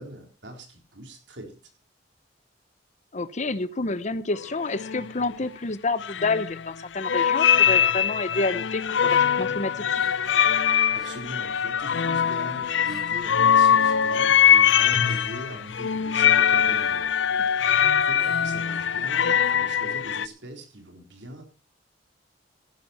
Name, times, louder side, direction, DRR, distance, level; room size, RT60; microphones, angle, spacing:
voice 1, 0.0-1.6 10.9-17.1 17.5-21.4, right 1 dB, 70° right, 4 dB, 3.9 m, -41 dB
voice 2, 3.1-10.0, left 3 dB, 40° left, 15 dB, 0.9 m, -29 dB
sound 1, 4.4-4.5 4.7-5.1 6.0-6.7 7.0-20.3, left 8 dB, 80° left, 0.5 m, -22 dB
sound 2, 10.0-11.8 12.1-13.4 13.7-19.1, equal, ahead, 2.6 m, -52 dB
15.0 x 11.0 x 4.4 m, 0.33 s
head